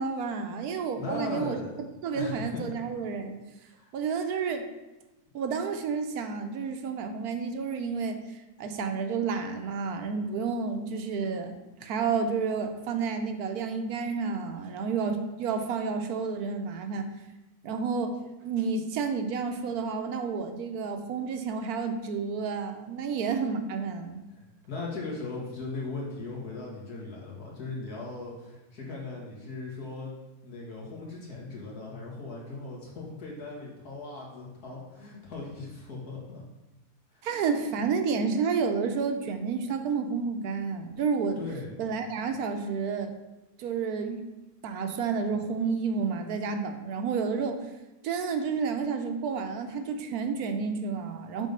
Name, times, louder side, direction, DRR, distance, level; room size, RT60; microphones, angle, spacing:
voice 1, 0.0-1.6 2.0-3.4 3.9-4.7 5.3-17.1 17.6-24.2 37.2-41.4 41.8-43.1 43.6-44.3 44.6-47.6 48.0-51.5, right 5 dB, 80° right, 7 dB, 1.2 m, -30 dB
voice 2, 1.0-1.8 2.1-2.6 3.7-3.9 24.3-30.1 30.4-36.4 37.1-37.3 41.4-41.8, left 3 dB, 80° left, -4 dB, 2.3 m, -38 dB
7.4 x 3.6 x 5.3 m, 1.0 s
omnidirectional pair, 1.6 m